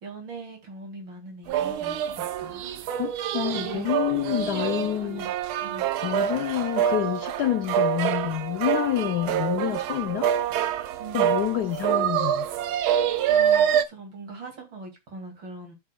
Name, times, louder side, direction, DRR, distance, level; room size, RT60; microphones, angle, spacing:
voice 1, 0.0-3.0 3.5-3.9 4.3-5.3 5.6-5.9 11.0-11.3 13.3-15.7, right 3 dB, 60° right, 3.0 m, -41 dB
sound 1, 1.5-13.8, right 9 dB, 80° right, 1.5 m, -26 dB
voice 2, 2.9-5.3 6.0-10.4 11.1-12.5, left 13 dB, 85° left, 0.9 m, -28 dB
15.5 x 5.5 x 2.3 m
omnidirectional pair, 2.4 m